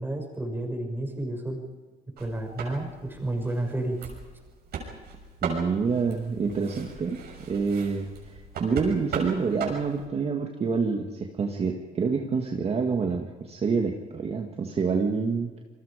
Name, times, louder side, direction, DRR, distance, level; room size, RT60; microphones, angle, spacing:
voice 1, 0.0-1.6 2.1-4.0, right 1 dB, 10° right, 3 dB, 6.5 m, -31 dB
sound 1, 2.2-10.1, right 5 dB, 70° right, 6.7 m, -39 dB
voice 2, 5.4-7.2 7.5-8.1 8.6-15.5, right 5 dB, 35° right, 2 dB, 2.1 m, -27 dB
29.0 x 21.5 x 5.2 m, 1.4 s
cardioid pair, 110°, 17 cm